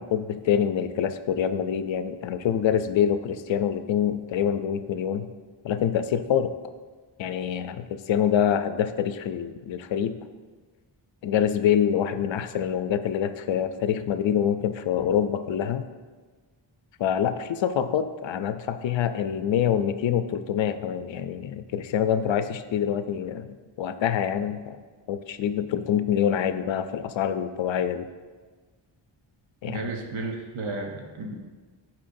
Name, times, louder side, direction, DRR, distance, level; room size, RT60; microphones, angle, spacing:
voice 1, 0.0-5.3 5.6-6.5 7.2-10.2 11.2-15.8 17.0-28.1 29.6-29.8, left 9 dB, 75° left, 10 dB, 0.5 m, -26 dB
voice 2, 29.7-31.4, right 3 dB, 90° right, 2 dB, 0.9 m, -33 dB
11.5 x 4.4 x 2.6 m, 1.4 s
wide cardioid pair, 140°, 47 cm